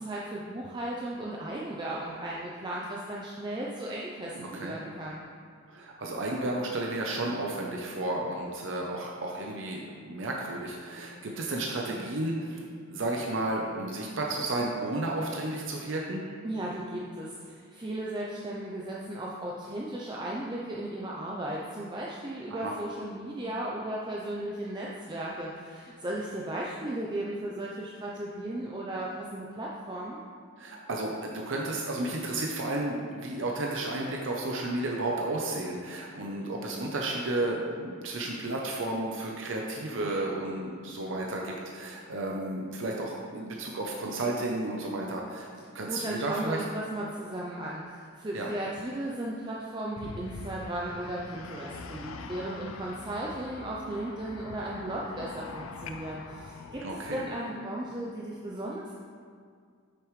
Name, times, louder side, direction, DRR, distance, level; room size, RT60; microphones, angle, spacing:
voice 1, 0.0-5.2 16.4-30.2 45.9-58.9, right 1 dB, 20° right, -4 dB, 0.5 m, -36 dB
voice 2, 4.4-4.8 5.7-16.3 22.5-22.8 30.6-45.5 45.7-46.6 48.3-48.5 56.8-57.2, right 2 dB, 60° right, -1 dB, 0.7 m, -32 dB
sound 1, 50.0-57.2, left 4 dB, 70° left, 0.4 m, -43 dB
8.4 x 6.4 x 3.2 m, 2.1 s
head